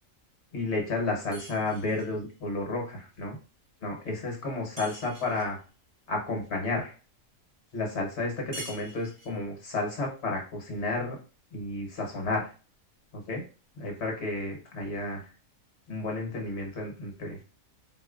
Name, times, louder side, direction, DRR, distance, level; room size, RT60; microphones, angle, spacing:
voice 1, 0.5-3.4 3.8-5.6 6.1-6.9 7.7-11.2 11.5-12.5 13.1-13.4 13.8-15.3 15.9-17.4, left 2 dB, 60° left, 1 dB, 1.2 m, -32 dB
sound 1, 1.3-2.2 4.8-5.5 8.5-9.5, right 1 dB, 30° right, 1.1 m, -45 dB
4.0 x 2.4 x 2.4 m, 0.35 s
omnidirectional pair, 1.4 m